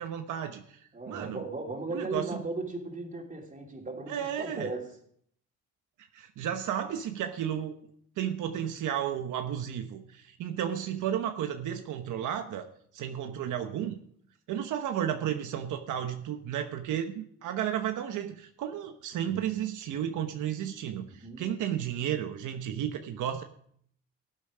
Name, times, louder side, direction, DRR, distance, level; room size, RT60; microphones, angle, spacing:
voice 1, 0.0-0.8 1.1-1.4 1.9-2.4 4.1-4.7 6.1-7.7 8.2-12.7 12.9-14.0 14.5-23.4, right 10 dB, 80° right, 6 dB, 1.1 m, -33 dB
voice 2, 0.9-4.9 20.9-21.4, right 3 dB, 25° right, 1 dB, 3.2 m, -37 dB
17.5 x 8.3 x 5.0 m, 0.63 s
cardioid pair, 90°, 30 cm